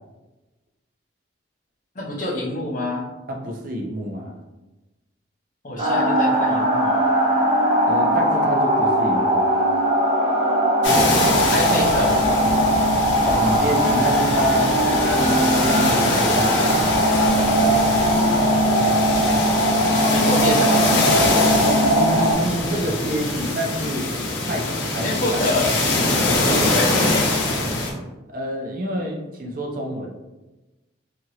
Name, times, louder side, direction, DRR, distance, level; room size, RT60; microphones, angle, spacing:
voice 1, 2.0-3.1 5.6-7.1 11.5-12.2 20.1-20.9 25.0-25.7 26.7-27.3, left 1 dB, 45° left, -2 dB, 0.6 m, -26 dB
voice 2, 3.3-4.4 7.8-9.6 13.2-14.7 15.0-16.6 21.6-24.1 24.4-25.4 26.2-26.7 28.3-30.2, right 1 dB, 45° right, 0 dB, 0.5 m, -28 dB
sound 1, 5.8-22.3, equal, 30° right, 0.9 m, -19 dB
sound 2, 10.8-27.9, left 2 dB, 80° left, 0.6 m, -23 dB
2.8 x 2.5 x 2.8 m, 1.1 s
head